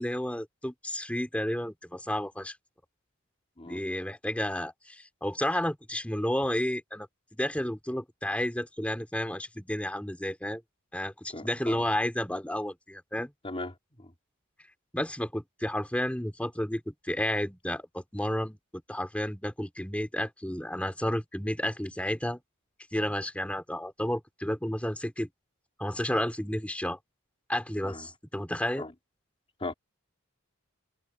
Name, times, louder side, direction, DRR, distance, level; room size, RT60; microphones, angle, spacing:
voice 1, 0.0-2.6 3.7-10.6 10.9-13.3 14.9-18.6 18.9-22.4 22.9-25.3 25.8-27.0 27.5-28.8, left 1 dB, 5° left, 2.9 m, -31 dB
voice 2, 11.3-11.8 13.4-14.1 27.8-28.1 28.8-28.9 29.6-29.7, left 2 dB, 25° left, 3.0 m, -38 dB
head